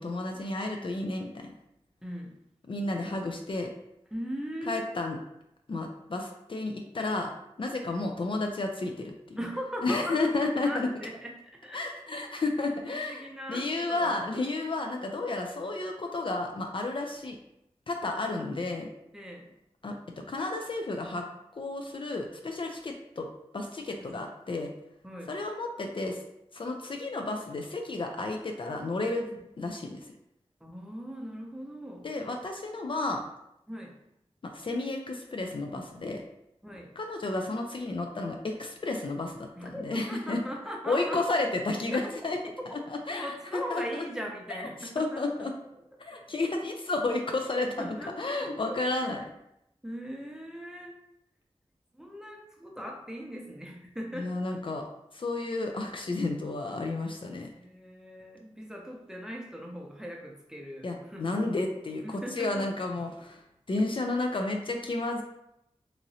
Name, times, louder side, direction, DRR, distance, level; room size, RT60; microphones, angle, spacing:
voice 1, 0.0-1.5 2.7-3.7 4.7-5.2 5.7-7.3 7.6-9.4 9.8-10.9 11.7-13.2 13.5-17.4 17.9-18.9 19.8-20.0 20.3-21.2 21.5-23.3 23.5-24.7 25.3-26.2 26.5-29.2 29.6-30.1 32.0-33.2 34.4-36.2 37.0-40.4 40.9-42.4 42.9-43.3 43.5-44.0 44.8-45.5 46.0-49.2 54.2-54.8 55.1-57.5 60.8-63.4 63.7-65.2, left 2 dB, 50° left, 3 dB, 0.4 m, -32 dB
voice 2, 2.0-2.4 4.1-4.9 9.4-12.0 12.8-14.1 19.1-19.5 24.0-24.2 25.0-25.3 29.2-29.4 30.6-32.1 33.7-34.0 36.6-36.9 39.5-41.2 41.9-42.1 42.5-42.9 43.2-45.5 47.8-48.8 49.8-50.9 51.9-54.8 57.5-61.5 62.0-62.7, equal, 5° right, 0 dB, 0.6 m, -40 dB
2.9 x 2.6 x 2.7 m, 0.82 s
wide cardioid pair, 50°, 11 cm